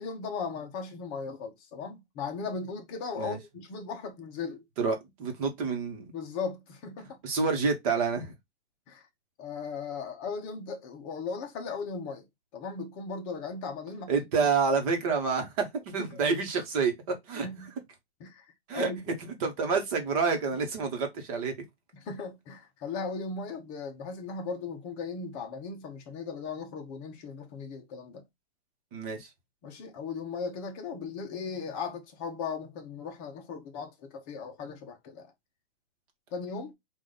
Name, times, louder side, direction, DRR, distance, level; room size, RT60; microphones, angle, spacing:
voice 1, 0.0-4.6 6.1-7.2 8.9-9.1 9.4-12.3 12.5-14.5 16.0-16.2 17.4-17.7 18.2-18.5 18.7-19.0 21.9-28.2 29.6-35.3 36.3-36.7, left 5 dB, 20° left, 0.9 m, -37 dB
voice 2, 4.8-6.1 7.2-8.3 14.1-17.5 18.7-18.9 19.4-21.5 28.9-29.3, right 5 dB, 35° right, 1.3 m, -28 dB
5.0 x 2.6 x 3.9 m
hypercardioid pair, 160°, 32 cm